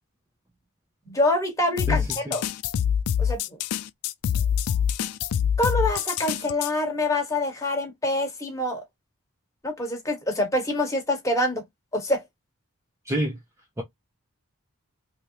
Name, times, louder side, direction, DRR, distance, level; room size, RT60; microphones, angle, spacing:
voice 1, 1.0-2.4 3.2-3.6 5.6-8.8 9.6-11.6 11.9-12.2, left 1 dB, 15° left, 1.2 m, -26 dB
sound 1, 1.8-6.7, left 8 dB, 80° left, 0.3 m, -25 dB
voice 2, 1.9-2.4 13.1-13.4 13.8-13.9, right 1 dB, 15° right, 0.5 m, -28 dB
3.3 x 2.7 x 2.8 m
head